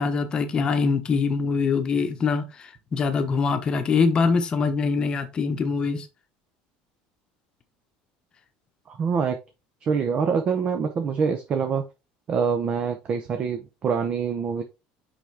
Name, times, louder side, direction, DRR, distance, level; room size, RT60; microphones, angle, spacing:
voice 1, 0.0-6.1, left 5 dB, 25° left, 1.1 m, -23 dB
voice 2, 8.9-9.4 9.8-11.8 12.3-14.6, right 6 dB, 35° right, 0.8 m, -25 dB
6.0 x 5.1 x 3.4 m
cardioid pair, 150°, 3 cm